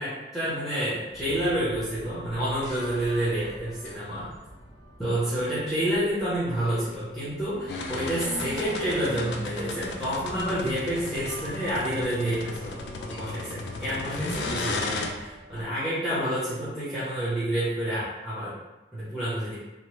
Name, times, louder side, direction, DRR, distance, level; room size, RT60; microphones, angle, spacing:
voice 1, 0.0-4.3 5.0-18.5 18.9-19.5, right 1 dB, ahead, -12 dB, 0.8 m, -29 dB
sound 1, 1.1-15.6, equal, 40° left, 0.7 m, -46 dB
sound 2, 7.7-15.1, left 3 dB, 70° left, 0.3 m, -34 dB
3.0 x 2.1 x 3.1 m, 1.1 s
head